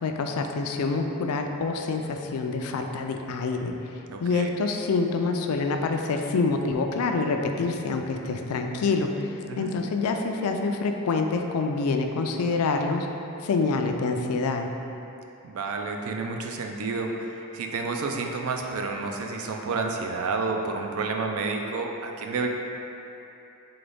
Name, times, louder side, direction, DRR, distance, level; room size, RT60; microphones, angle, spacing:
voice 1, 0.0-3.7 4.2-13.1 13.4-14.7, left 4 dB, 75° left, 4 dB, 0.4 m, -26 dB
voice 2, 4.1-4.5 9.5-9.7 15.4-22.5, right 4 dB, 70° right, 2 dB, 0.4 m, -30 dB
3.9 x 3.9 x 3.4 m, 2.8 s
head